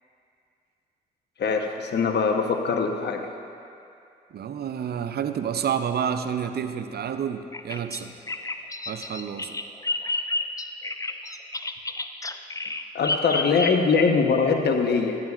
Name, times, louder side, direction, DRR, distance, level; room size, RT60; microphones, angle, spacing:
voice 1, 1.4-3.3 12.9-15.2, left 5 dB, 65° left, 4 dB, 0.9 m, -22 dB
voice 2, 4.3-8.1 8.9-9.6, right 8 dB, 60° right, 9 dB, 0.6 m, -29 dB
Bird vocalization bird call bird song, 7.5-14.1, left 2 dB, 15° left, 0.5 m, -31 dB
14.0 x 11.0 x 2.4 m, 2.5 s
supercardioid pair, 50°, 19 cm